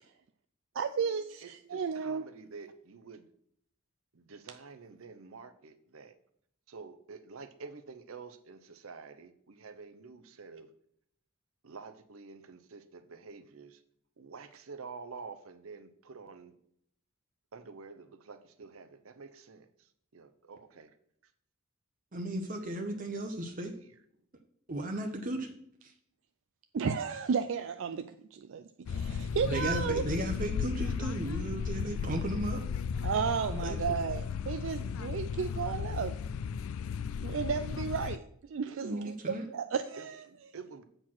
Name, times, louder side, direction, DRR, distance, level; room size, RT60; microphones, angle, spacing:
voice 1, 0.8-2.2 26.7-30.1 33.0-36.2 37.2-40.2, right 6 dB, 60° right, 0.4 m, -33 dB
voice 2, 1.4-3.3 4.1-6.2 6.7-10.7 11.6-13.8 14.2-16.5 17.5-20.9 23.7-23.9 38.7-39.1 40.0-40.8, right 4 dB, 80° right, 0.7 m, -49 dB
voice 3, 22.1-23.7 24.7-25.5 25.8-25.9 29.4-32.6 33.5-33.8 38.8-39.5, right 1 dB, 40° right, 0.8 m, -35 dB
sound 1, 28.9-38.2, left 6 dB, 75° left, 0.3 m, -35 dB
7.8 x 4.4 x 5.9 m
head